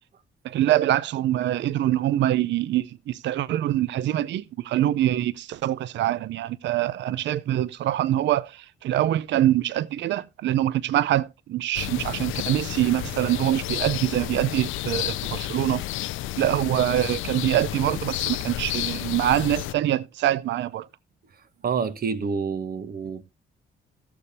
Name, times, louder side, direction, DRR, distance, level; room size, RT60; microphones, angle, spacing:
voice 1, 0.4-15.8 16.4-20.9, right 13 dB, 65° right, 0.5 m, -24 dB
sound 1, 11.7-19.7, left 16 dB, 85° left, 0.4 m, -31 dB
voice 2, 21.6-23.2, right 6 dB, 50° right, 1.0 m, -28 dB
15.5 x 6.9 x 2.7 m
cardioid pair, 90°, 20 cm